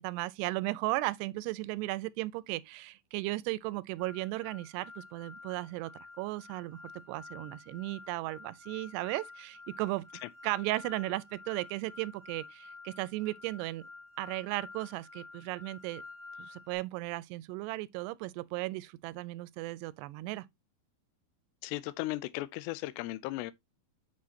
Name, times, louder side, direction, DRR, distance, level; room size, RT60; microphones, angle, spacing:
voice 1, 0.0-5.9 6.2-6.8 7.1-10.0 10.4-13.8 14.2-16.0 16.4-20.5, right 19 dB, 85° right, 2.7 m, -36 dB
sound 1, 4.0-16.7, left 3 dB, 30° right, 1.2 m, -50 dB
voice 2, 21.6-23.5, left 18 dB, 90° left, 2.7 m, -36 dB
8.5 x 6.3 x 2.8 m
omnidirectional pair, 4.8 m